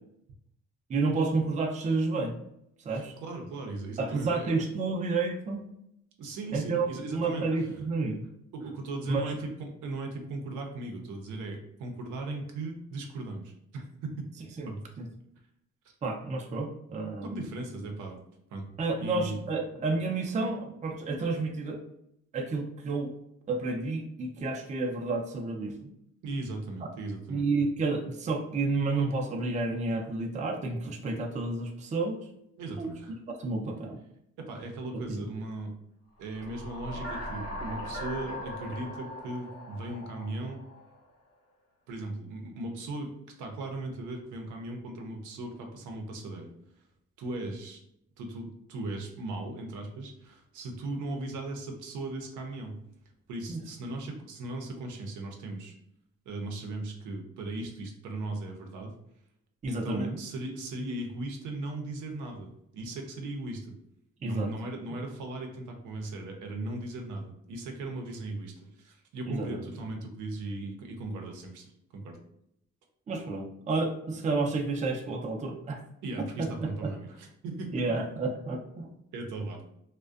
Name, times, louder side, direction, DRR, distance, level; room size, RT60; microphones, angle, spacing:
voice 1, 0.9-2.3 2.8-3.1 4.0-5.6 6.5-8.2 9.1-9.3 14.6-14.7 15.0-15.1 16.0-17.5 18.8-21.8 22.3-23.1 23.5-25.9 27.3-32.2 32.8-32.9 33.3-34.0 34.9-35.3 53.5-53.6 59.6-60.2 64.2-64.5 69.3-69.6 73.1-75.8 76.4-76.9 77.7-78.9, right 3 dB, 25° right, 2 dB, 0.4 m, -30 dB
voice 2, 2.9-4.5 6.2-7.7 8.5-14.1 14.6-14.8 17.3-18.2 18.5-18.7 19.0-19.4 26.2-27.4 32.6-33.2 34.4-35.8 36.2-40.6 41.9-43.1 43.4-46.5 47.2-47.8 48.2-52.8 53.3-55.7 56.3-58.9 59.7-63.8 64.2-72.2 76.0-78.2 79.1-79.6, right 2 dB, 85° right, 2 dB, 0.6 m, -38 dB
sound 1, 36.3-40.9, left 1 dB, 55° left, 0.9 m, -39 dB
2.4 x 2.1 x 2.3 m, 0.76 s
cardioid pair, 90°, 30 cm